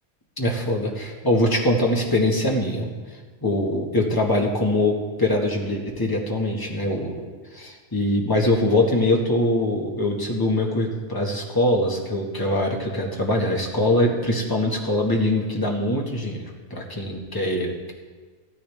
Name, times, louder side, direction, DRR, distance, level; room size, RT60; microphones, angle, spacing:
voice 1, 0.4-2.9 3.4-4.9 5.2-7.2 7.5-16.4 16.7-17.9, left 1 dB, 15° left, -1 dB, 1.7 m, -23 dB
15.5 x 14.0 x 3.5 m, 1.4 s
omnidirectional pair, 1.5 m